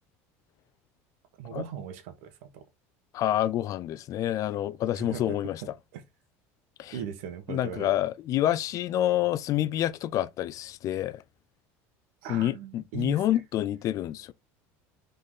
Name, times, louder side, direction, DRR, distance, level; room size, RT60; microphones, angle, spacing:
voice 1, 1.4-2.6 4.9-6.0 6.9-7.9 12.2-13.2, right 8 dB, 80° right, 1.4 m, -39 dB
voice 2, 3.1-5.6 6.8-7.0 7.5-11.2 12.3-14.3, left 12 dB, 50° left, 0.6 m, -28 dB
6.1 x 4.0 x 3.9 m
supercardioid pair, 110°, 7 cm